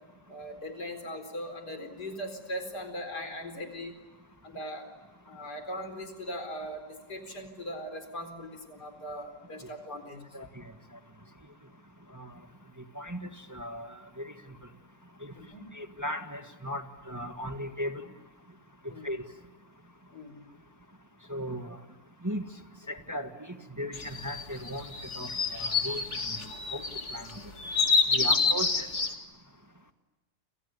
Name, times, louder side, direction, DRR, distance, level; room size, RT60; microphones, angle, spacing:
voice 1, 0.3-4.0 4.4-4.9 5.3-10.2 15.3-15.6 18.9-19.1 20.1-20.4 28.2-28.4, equal, 90° left, 7 dB, 4.9 m, -39 dB
voice 2, 12.9-14.3 15.2-15.3 15.7-18.0 18.8-19.2 21.3-21.8 22.2-22.4 22.9-26.0 26.7-26.8 27.1-27.4 28.1-28.9, equal, 10° right, 6 dB, 1.6 m, -37 dB
sound 1, 23.9-29.1, left 4 dB, 45° left, 2.5 m, -28 dB
30.0 x 28.0 x 6.9 m, 1.2 s
omnidirectional pair, 1.7 m